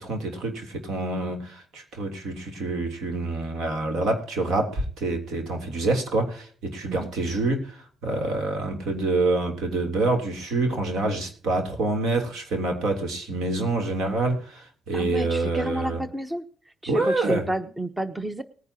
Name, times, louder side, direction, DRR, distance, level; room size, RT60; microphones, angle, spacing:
voice 1, 0.0-16.0 16.9-17.5, right 2 dB, 80° right, 4 dB, 3.2 m, -27 dB
voice 2, 14.9-16.4 16.8-18.4, right 1 dB, 15° right, 11 dB, 1.0 m, -30 dB
19.5 x 9.8 x 2.9 m, 0.43 s
cardioid pair, 90°, 0 cm